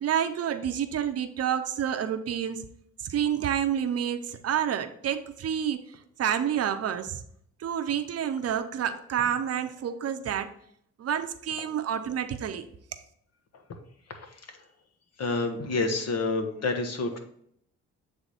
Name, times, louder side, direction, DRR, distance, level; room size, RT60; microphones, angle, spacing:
voice 1, 0.0-2.6 3.0-5.8 6.2-7.2 7.6-10.5 11.0-12.6, right 9 dB, 55° right, 9 dB, 0.7 m, -29 dB
voice 2, 14.1-14.7 15.2-17.2, left 3 dB, 55° left, 5 dB, 1.2 m, -29 dB
8.1 x 3.4 x 4.1 m, 0.68 s
cardioid pair, 90°, 30 cm